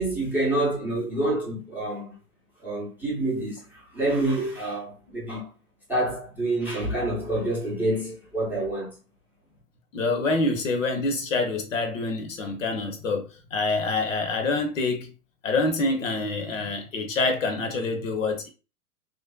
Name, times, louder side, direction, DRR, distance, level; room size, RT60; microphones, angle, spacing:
voice 1, 0.0-2.1 2.6-5.5 5.9-9.0, right 1 dB, 5° right, 0.7 m, -27 dB
voice 2, 9.9-15.1 15.4-18.5, left 3 dB, 55° left, 0.8 m, -26 dB
3.2 x 2.6 x 2.3 m
figure-of-eight pair, 105°, 46 cm